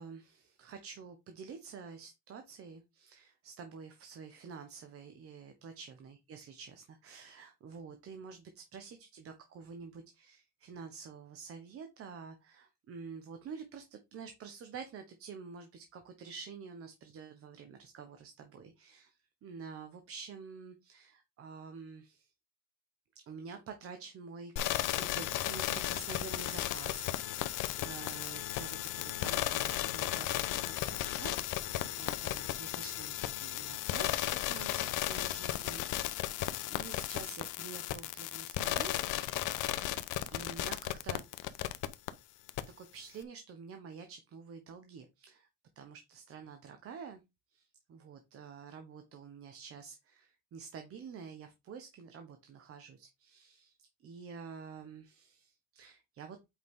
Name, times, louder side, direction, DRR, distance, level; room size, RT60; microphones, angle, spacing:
voice 1, 0.0-22.3 23.3-30.5 30.8-39.1 40.3-41.6 42.8-45.5 45.8-47.2 47.5-53.8 54.0-56.4, right 5 dB, 40° right, 6 dB, 1.2 m, -49 dB
sound 1, 24.6-42.1 42.5-42.6, left 14 dB, 60° left, 0.8 m, -35 dB
8.1 x 5.1 x 3.7 m, 0.22 s
cardioid pair, 145°, 34 cm